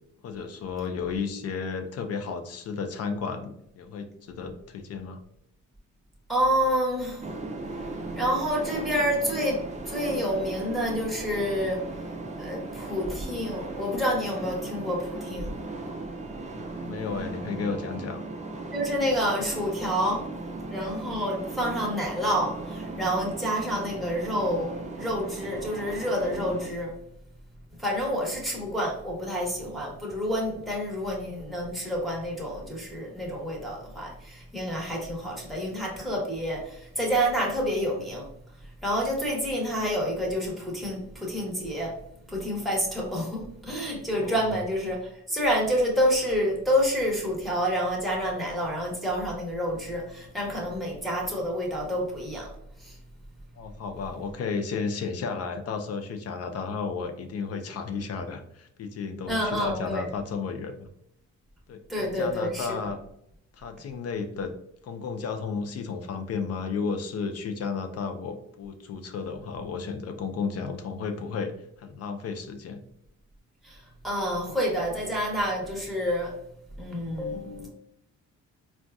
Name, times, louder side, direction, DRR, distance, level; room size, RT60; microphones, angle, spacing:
voice 1, 0.2-5.2 16.5-18.2 44.2-44.5 53.6-60.9 61.7-63.0 63.6-64.5 64.8-71.5 71.8-72.8, left 5 dB, 55° left, 6 dB, 0.5 m, -33 dB
voice 2, 6.3-7.3 8.1-12.1 12.4-15.5 18.7-20.3 20.7-26.9 27.8-42.0 42.3-52.5 52.8-53.0 59.3-60.1 61.9-62.9 73.6-76.3 76.8-77.7, equal, ahead, -4 dB, 1.2 m, -28 dB
sound 1, 7.2-26.7, right 2 dB, 25° right, 0.5 m, -37 dB
3.9 x 2.4 x 2.3 m, 0.75 s
cardioid pair, 90°, 30 cm